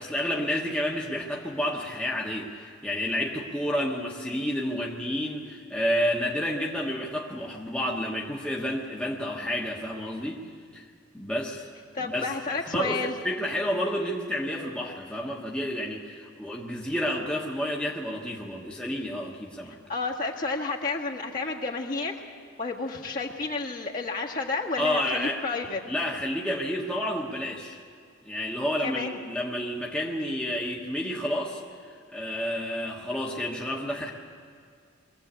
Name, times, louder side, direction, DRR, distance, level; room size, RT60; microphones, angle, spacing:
voice 1, 0.0-10.4 10.7-10.9 11.1-11.7 12.0-19.8 24.8-25.5 25.8-27.8 28.2-31.6 32.1-34.1, equal, 5° left, -3 dB, 1.3 m, -30 dB
voice 2, 11.9-13.2 19.9-22.1 22.6-25.8 28.8-29.2, left 3 dB, 45° left, -2 dB, 1.8 m, -31 dB
22.5 x 15.0 x 8.2 m, 2.2 s
head